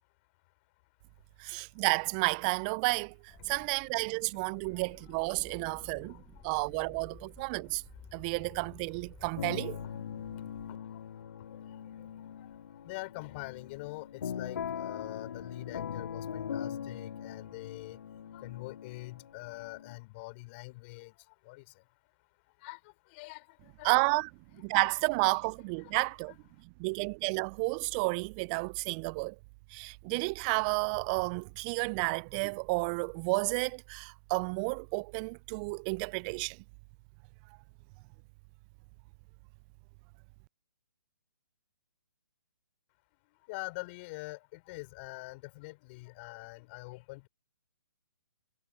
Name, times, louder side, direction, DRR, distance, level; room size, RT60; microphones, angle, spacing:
voice 1, 1.4-3.2 3.5-7.8 8.1-9.8 23.8-26.3 26.8-29.4 29.7-36.6, right 32 dB, 25° right, 0.4 m, -31 dB
sound 1, 3.3-9.4, left 8 dB, 10° left, 1.0 m, -54 dB
sound 2, 9.4-20.0, left 8 dB, 55° left, 2.0 m, -41 dB
voice 2, 10.7-11.0 11.5-11.6 11.9-12.1 12.8-18.0 18.3-21.1 21.5-21.6 22.6-22.8 23.1-23.9 24.9-25.0 25.8-25.9 26.3-26.4 43.5-47.3, left 24 dB, 30° left, 3.7 m, -44 dB
figure-of-eight pair, 135°, 11 cm